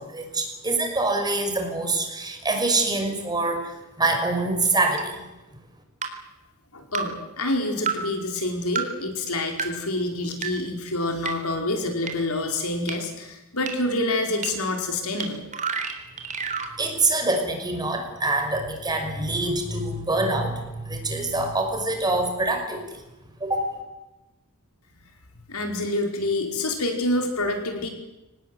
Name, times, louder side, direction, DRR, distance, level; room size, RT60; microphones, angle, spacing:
voice 1, 0.0-5.3 16.8-22.9 23.4-23.7, right 2 dB, 20° right, 4 dB, 5.7 m, -25 dB
sound 1, 5.0-5.1 6.0-6.1 6.9-7.0 7.9-8.0 8.7-8.8 9.6-9.7 10.4-10.5 11.2-11.3 12.1-12.2 12.9-13.0 13.7-13.8 14.4-14.5 15.2-15.3 15.5-16.7, right 6 dB, 35° right, 3.9 m, -28 dB
voice 2, 6.7-15.4 25.5-27.9, left 2 dB, 70° left, 4 dB, 5.2 m, -27 dB
25.5 x 19.0 x 9.5 m, 1.0 s
head